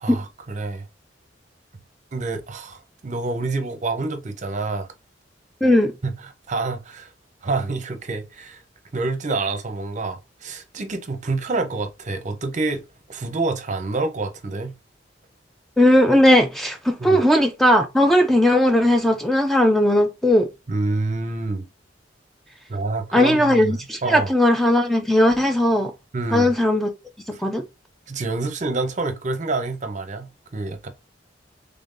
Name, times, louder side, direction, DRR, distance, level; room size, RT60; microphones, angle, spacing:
voice 1, 0.0-0.9 2.1-4.9 6.0-7.1 7.4-8.6 8.9-12.8 13.1-14.7 17.0-17.2 20.7-21.7 22.7-24.3 26.1-26.5 27.3-27.4 28.1-30.9, right 3 dB, 40° right, 0.7 m, -27 dB
voice 2, 5.6-5.9 15.8-20.5 23.1-25.9 26.3-26.9 27.4-27.6, left 1 dB, ahead, 0.3 m, -17 dB
3.4 x 2.6 x 3.7 m
head